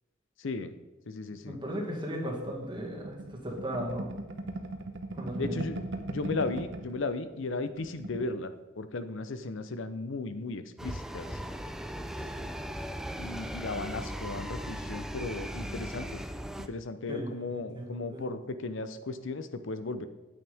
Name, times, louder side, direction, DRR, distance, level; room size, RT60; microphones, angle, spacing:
voice 1, 0.4-0.7 1.1-1.6 5.4-11.4 13.2-16.2 16.7-20.1, left 3 dB, 70° left, 11 dB, 0.7 m, -36 dB
voice 2, 1.5-4.1 5.1-5.6 12.2-12.6 17.1-18.3, equal, 25° right, -1 dB, 1.9 m, -37 dB
sound 1, 2.5-7.0 7.3-7.5 7.7-8.3, right 1 dB, 65° right, 0.9 m, -39 dB
sound 2, 10.8-16.7, equal, 5° right, 0.4 m, -38 dB
9.0 x 8.6 x 3.5 m, 1.1 s
head